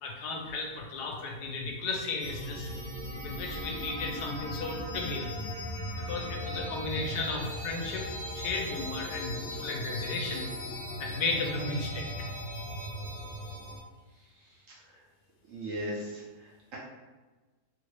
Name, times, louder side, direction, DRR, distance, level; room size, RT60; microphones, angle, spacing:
voice 1, 0.0-2.7 3.2-5.4 5.9-10.5 11.0-12.1, left 3 dB, 75° left, 1 dB, 1.1 m, -34 dB
sound 1, 2.2-13.8, equal, 35° left, 0.4 m, -38 dB
voice 2, 14.3-15.0 15.5-16.8, equal, 65° right, -5 dB, 0.9 m, -39 dB
3.0 x 2.6 x 3.0 m, 1.3 s
omnidirectional pair, 1.8 m